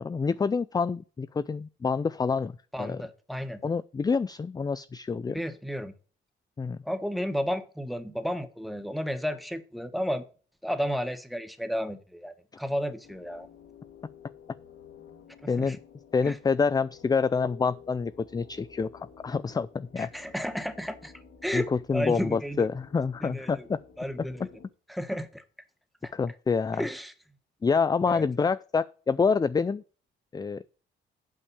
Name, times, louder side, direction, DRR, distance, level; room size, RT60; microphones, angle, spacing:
voice 1, 0.0-2.5 2.8-3.0 3.6-5.4 6.6-6.8 15.5-15.8 16.1-20.1 21.5-23.8 26.1-26.8 27.6-29.8 30.3-30.6, left 5 dB, 20° left, 0.4 m, -27 dB
voice 2, 2.7-3.6 5.3-5.9 6.8-10.2 10.6-13.5 15.4-15.8 16.2-16.4 20.0-21.1 21.4-22.7 23.2-23.7 24.0-24.5 24.9-25.4 26.0-26.1 26.7-27.1 28.1-28.3, equal, ahead, 1.4 m, -32 dB
sound 1, 13.0-24.7, left 7 dB, 75° left, 1.8 m, -52 dB
8.7 x 5.2 x 6.8 m
cardioid pair, 90°, 20 cm